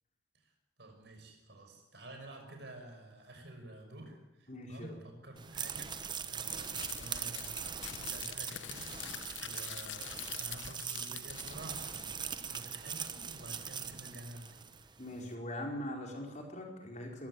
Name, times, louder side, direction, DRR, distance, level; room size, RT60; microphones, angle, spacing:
voice 1, 0.8-5.9 6.2-14.6, right 1 dB, 60° right, 4 dB, 6.2 m, -50 dB
voice 2, 4.5-4.9 15.0-17.3, left 1 dB, 40° left, 1 dB, 5.0 m, -41 dB
sound 1, 5.4-14.9, right 7 dB, 25° right, 1.0 m, -41 dB
Crumpling crinkling, 6.4-12.3, left 11 dB, 80° left, 1.0 m, -46 dB
22.0 x 15.5 x 9.7 m, 0.98 s
head